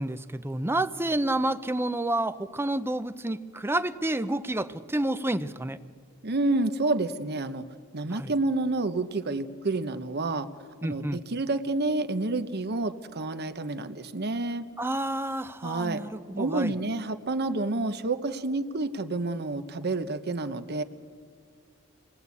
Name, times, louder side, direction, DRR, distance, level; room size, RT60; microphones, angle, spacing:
voice 1, 0.0-5.8 8.1-8.3 10.8-11.2 14.8-16.7, right 1 dB, 10° right, 12 dB, 0.6 m, -29 dB
voice 2, 6.2-7.6 7.9-10.5 10.8-14.6 15.6-16.0 16.4-20.8, right 2 dB, 50° right, 10 dB, 1.0 m, -29 dB
29.0 x 20.0 x 8.4 m, 2.1 s
head